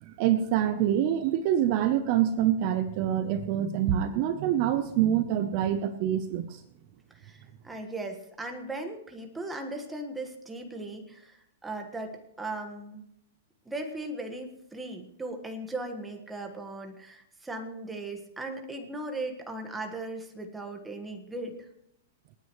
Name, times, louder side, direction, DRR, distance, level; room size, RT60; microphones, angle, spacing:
voice 1, 0.0-6.6, right 10 dB, 35° right, 10 dB, 0.7 m, -26 dB
voice 2, 7.1-13.0 13.6-21.7, right 2 dB, 5° right, 4 dB, 1.5 m, -38 dB
28.0 x 9.4 x 3.2 m, 0.77 s
supercardioid pair, 165°, 0 cm